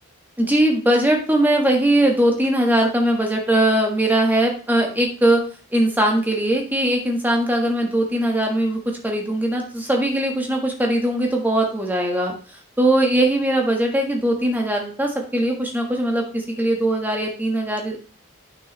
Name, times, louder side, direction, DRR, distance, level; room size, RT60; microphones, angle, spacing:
voice 1, 0.4-5.4 5.7-12.3 12.8-18.0, right 1 dB, 10° right, 1 dB, 1.5 m, -20 dB
9.1 x 6.3 x 3.3 m, 0.38 s
head